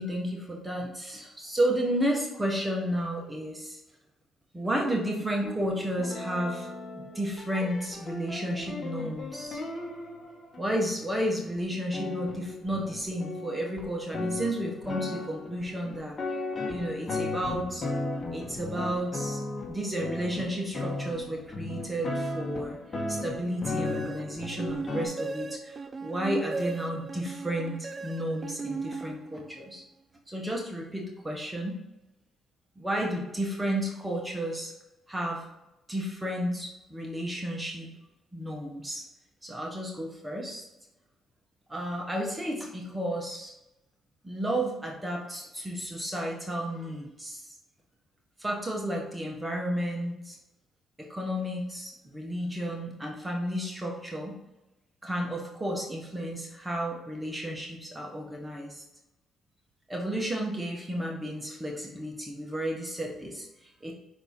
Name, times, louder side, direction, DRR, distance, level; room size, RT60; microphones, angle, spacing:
voice 1, 0.0-3.8 4.5-6.7 7.0-9.6 10.6-16.1 16.7-17.9 18.3-19.4 19.7-22.8 23.1-29.8 30.3-31.8 32.8-34.7 35.1-35.4 35.9-37.9 38.3-39.0 39.4-40.6 41.7-43.5 44.2-47.5 48.4-50.4 51.0-54.3 55.0-58.8 59.9-63.9, equal, 15° right, -1 dB, 1.3 m, -32 dB
sound 1, 5.4-10.9 11.6-11.7 11.9-25.1, left 2 dB, 35° left, 1.7 m, -36 dB
sound 2, 23.8-29.7, right 4 dB, 35° right, 0.4 m, -37 dB
5.9 x 4.1 x 5.4 m, 0.96 s
cardioid pair, 90°, 0 cm